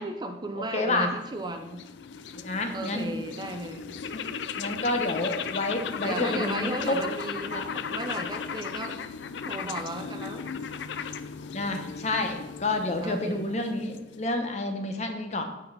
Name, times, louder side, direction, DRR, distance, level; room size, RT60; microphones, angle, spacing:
voice 1, 0.0-1.8 2.7-4.0 6.0-9.0 9.4-10.5 13.0-13.5, right 1 dB, 25° right, 5 dB, 0.6 m, -35 dB
voice 2, 0.7-1.1 2.4-3.1 4.1-4.2 4.6-7.0 7.5-7.6 11.5-15.4, left 2 dB, 40° left, 5 dB, 0.9 m, -29 dB
sound 1, 1.0-14.4, left 6 dB, 85° left, 0.4 m, -36 dB
8.3 x 5.2 x 4.1 m, 0.99 s
head